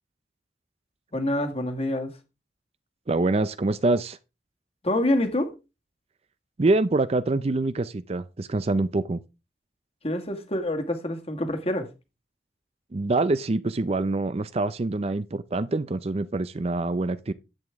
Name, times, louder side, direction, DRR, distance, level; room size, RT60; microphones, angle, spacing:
voice 1, 1.1-2.1 4.8-5.5 10.0-11.9, left 1 dB, 35° left, 1.8 m, -26 dB
voice 2, 3.1-4.2 6.6-9.2 12.9-17.3, right 2 dB, 35° right, 0.5 m, -25 dB
10.5 x 8.3 x 3.5 m
head